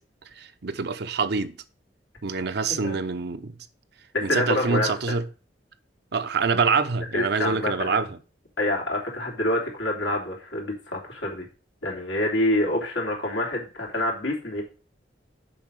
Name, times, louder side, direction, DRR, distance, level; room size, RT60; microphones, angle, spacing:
voice 1, 0.4-1.5 2.2-3.6 4.2-5.2 6.1-8.2, right 4 dB, 65° right, 0.8 m, -25 dB
voice 2, 4.1-5.1 7.1-8.0 8.6-11.4 11.8-14.6, left 1 dB, 85° left, 3.1 m, -27 dB
7.1 x 5.3 x 6.3 m
head